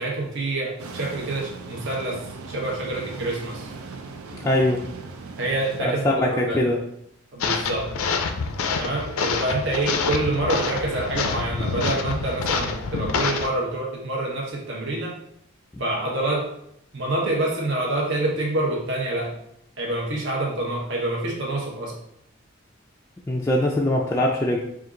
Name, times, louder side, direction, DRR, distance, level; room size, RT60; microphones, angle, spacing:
voice 1, 0.0-3.7 5.4-6.6 7.3-7.9 8.8-15.2 15.8-16.5 16.9-19.3 19.8-22.0, right 2 dB, 55° right, -2 dB, 1.0 m, -27 dB
sound 1, 0.8-5.8, right 4 dB, 85° right, 0.5 m, -38 dB
voice 2, 4.4-4.8 5.8-6.8 23.3-24.6, left 1 dB, 15° left, -2 dB, 0.3 m, -22 dB
sound 2, 7.4-13.5, left 4 dB, 75° left, 0.4 m, -27 dB
4.3 x 2.5 x 3.8 m, 0.75 s
head